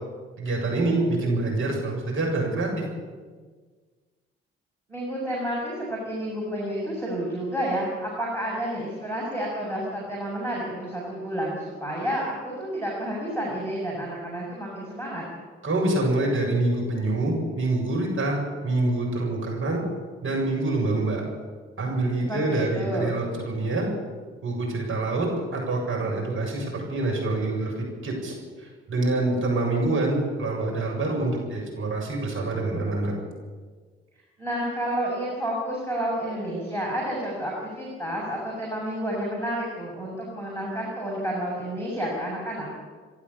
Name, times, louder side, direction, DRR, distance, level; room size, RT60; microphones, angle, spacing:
voice 1, 0.4-2.7 15.6-19.8 20.2-21.2 21.8-23.9 24.4-27.7 28.0-33.1, right 2 dB, 40° right, -1 dB, 7.5 m, -26 dB
voice 2, 4.9-15.2 22.2-23.1 34.4-42.7, right 1 dB, 90° right, -10 dB, 5.9 m, -30 dB
30.0 x 11.5 x 8.6 m, 1.5 s
figure-of-eight pair, 40°, 32 cm